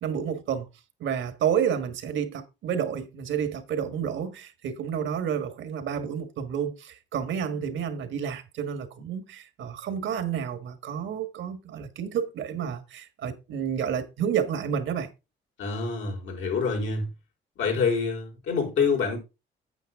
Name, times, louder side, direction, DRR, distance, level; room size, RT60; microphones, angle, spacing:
voice 1, 0.0-0.7 1.0-15.1, right 8 dB, 75° right, 1.7 m, -30 dB
voice 2, 15.6-17.1 17.6-19.2, left 5 dB, 75° left, 4.9 m, -26 dB
9.0 x 8.0 x 3.7 m
cardioid pair, 90°, 20 cm